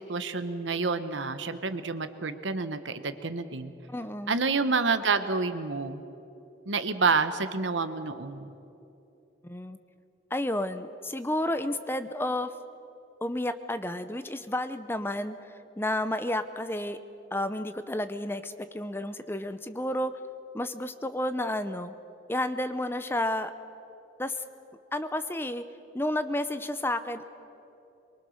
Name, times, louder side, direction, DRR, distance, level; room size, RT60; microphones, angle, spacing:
voice 1, 0.0-3.7 4.3-6.0 6.7-8.5, right 4 dB, 85° right, 10 dB, 1.2 m, -28 dB
voice 2, 3.9-4.4 9.4-9.8 10.3-12.5 13.2-17.0 17.3-20.1 20.5-21.9 22.3-23.5 24.2-24.4 24.9-25.7 25.9-27.3, left 1 dB, 10° left, 11 dB, 0.7 m, -31 dB
23.5 x 23.5 x 6.6 m, 2.9 s
head